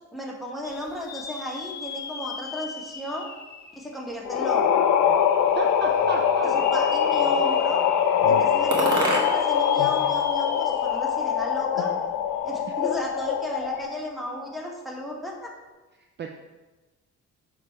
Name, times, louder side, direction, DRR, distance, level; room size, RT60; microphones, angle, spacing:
voice 1, 0.1-3.3 3.7-4.7 6.5-7.8 8.2-11.9 12.4-15.5, equal, ahead, -1 dB, 1.2 m, -34 dB
sound 1, 0.6-4.6 5.1-5.2 6.3-11.2 11.6-11.7 13.7-13.8, left 5 dB, 35° left, 0.6 m, -38 dB
sound 2, 4.2-14.0, left 8 dB, 75° left, 0.5 m, -23 dB
voice 2, 5.5-6.5 16.0-16.3, right 5 dB, 40° right, 4 dB, 0.4 m, -33 dB
sound 3, 5.5-6.5 7.2-7.8 8.7-9.6 9.9-11.0, right 2 dB, 75° right, 1.5 m, -30 dB
6.5 x 3.2 x 4.6 m, 1.2 s
cardioid pair, 90°, 30 cm